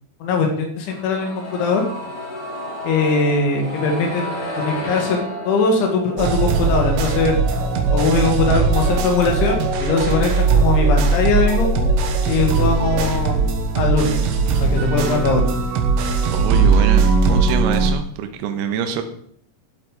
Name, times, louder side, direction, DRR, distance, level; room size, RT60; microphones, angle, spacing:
voice 1, 0.2-1.9 2.8-4.3 4.6-5.2 5.5-7.3 7.9-11.9 12.3-13.4 13.8-14.3 14.6-15.4, left 4 dB, 80° left, 2 dB, 4.5 m, -20 dB
sound 1, 0.9-12.7 13.0-13.1, equal, 45° left, 4.1 m, -33 dB
sound 2, 6.2-17.9, right 4 dB, 90° right, 3.8 m, -19 dB
voice 2, 16.3-19.0, right 7 dB, 75° right, 7 dB, 2.8 m, -25 dB
12.0 x 8.0 x 5.0 m, 0.63 s
omnidirectional pair, 5.4 m